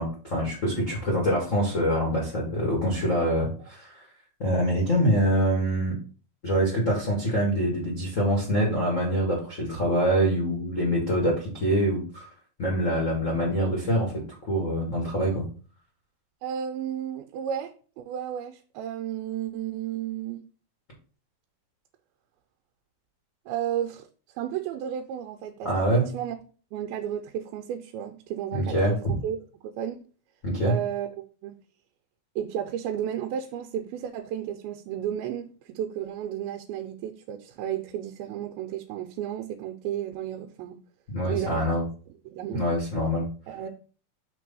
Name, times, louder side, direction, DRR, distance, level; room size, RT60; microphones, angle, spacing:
voice 1, 0.0-3.9 4.4-5.9 6.4-12.2 12.6-14.1 14.5-15.4 25.6-26.1 28.5-28.9 30.4-30.8 41.1-41.8 42.5-43.3, equal, 80° left, -2 dB, 0.7 m, -25 dB
voice 2, 16.4-17.7 18.0-20.4 23.5-24.1 24.3-26.4 26.7-29.0 29.2-29.4 29.8-30.0 30.6-31.2 31.4-31.5 32.4-40.8 41.3-41.7 42.3-42.6 43.5-43.7, right 10 dB, 85° right, 4 dB, 2.5 m, -33 dB
6.1 x 3.3 x 5.3 m, 0.39 s
omnidirectional pair, 4.3 m